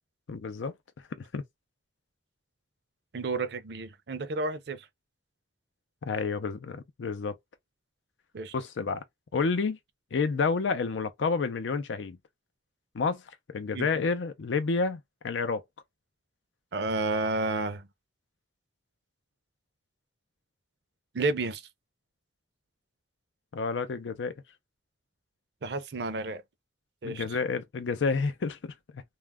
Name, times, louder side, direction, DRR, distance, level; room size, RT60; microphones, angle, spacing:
voice 1, 0.3-0.7 1.2-1.4 6.0-7.3 8.5-9.0 9.3-9.8 10.1-12.2 12.9-13.2 13.5-15.6 23.5-24.3 27.0-29.0, left 4 dB, 85° left, 0.5 m, -29 dB
voice 2, 3.1-4.9 8.3-8.5 13.7-13.9 16.7-17.9 21.1-21.6 25.6-26.4 27.0-27.4, right 3 dB, 65° right, 0.5 m, -31 dB
2.3 x 2.0 x 3.4 m
head